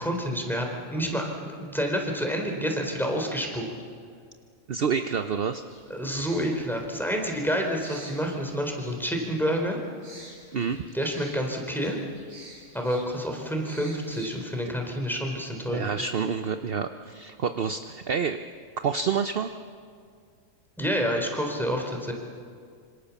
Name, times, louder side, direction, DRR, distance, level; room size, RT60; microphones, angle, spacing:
voice 1, 0.0-3.6 5.9-9.8 10.9-12.0 12.7-16.0 20.8-22.1, equal, ahead, 1 dB, 3.9 m, -28 dB
voice 2, 4.7-5.6 10.5-10.8 15.7-18.4 18.8-19.5, right 6 dB, 50° right, 8 dB, 1.0 m, -28 dB
sound 1, 5.7-14.6, right 1 dB, 90° right, 6.2 m, -50 dB
26.5 x 26.0 x 7.2 m, 2.1 s
omnidirectional pair, 1.3 m